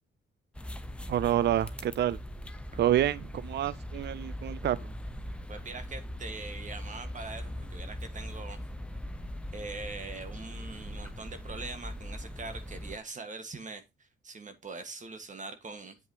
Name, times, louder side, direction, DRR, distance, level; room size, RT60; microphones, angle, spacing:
sound 1, 0.5-13.0, equal, 5° left, 0.9 m, -40 dB
voice 1, 1.1-2.2 2.8-4.8, right 12 dB, 55° right, 0.5 m, -28 dB
voice 2, 5.5-8.6 9.5-13.8 14.2-16.0, right 3 dB, 35° right, 1.6 m, -42 dB
7.9 x 7.8 x 2.9 m
cardioid pair, 105°, 21 cm